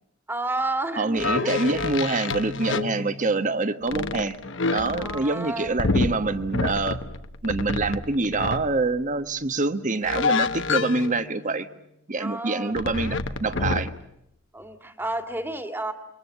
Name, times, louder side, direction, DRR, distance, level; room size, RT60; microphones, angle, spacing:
voice 1, 0.3-1.8 5.0-5.7 12.2-12.7 13.7-13.8 14.5-15.9, right 2 dB, 10° right, 7 dB, 2.0 m, -31 dB
voice 2, 1.0-4.4 4.7-7.0 7.4-11.7 12.1-13.9, right 3 dB, 40° right, 11 dB, 1.3 m, -25 dB
sound 1, 1.2-3.5 3.9-8.7 10.0-11.4 12.8-14.0, left 4 dB, 65° left, 1.2 m, -28 dB
28.5 x 24.0 x 7.4 m, 0.79 s
head